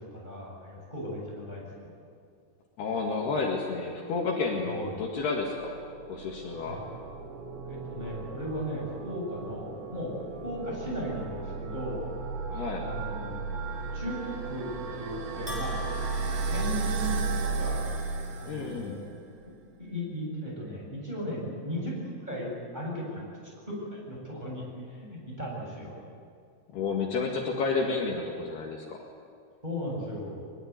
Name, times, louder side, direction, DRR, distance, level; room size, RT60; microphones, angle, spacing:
voice 1, 0.0-1.9 4.6-4.9 6.6-6.8 7.6-10.1 10.4-12.0 12.8-13.4 13.9-14.7 14.9-15.8 16.5-17.9 18.4-19.1 19.4-19.5 19.8-24.6 24.9-25.9 29.6-30.4, equal, 10° right, -4 dB, 7.6 m, -37 dB
voice 2, 2.8-5.8 6.1-6.8 12.5-12.9 18.4-19.0 26.7-29.0, left 4 dB, 60° left, 0 dB, 3.7 m, -31 dB
sound 1, 5.1-19.1, right 4 dB, 70° right, 4.1 m, -35 dB
Bell, 15.5-17.6, left 4 dB, 5° left, 4.2 m, -43 dB
22.5 x 22.5 x 9.6 m, 2.3 s
omnidirectional pair, 5.5 m